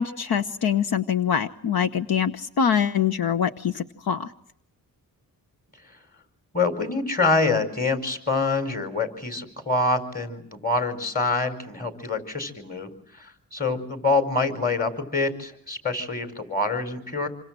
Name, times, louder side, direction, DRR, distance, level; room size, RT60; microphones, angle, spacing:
voice 1, 0.0-4.3, left 8 dB, 75° left, 11 dB, 1.1 m, -24 dB
voice 2, 6.5-17.3, left 3 dB, 25° left, 8 dB, 4.9 m, -26 dB
27.5 x 24.0 x 7.6 m, 0.71 s
wide cardioid pair, 110°, 37 cm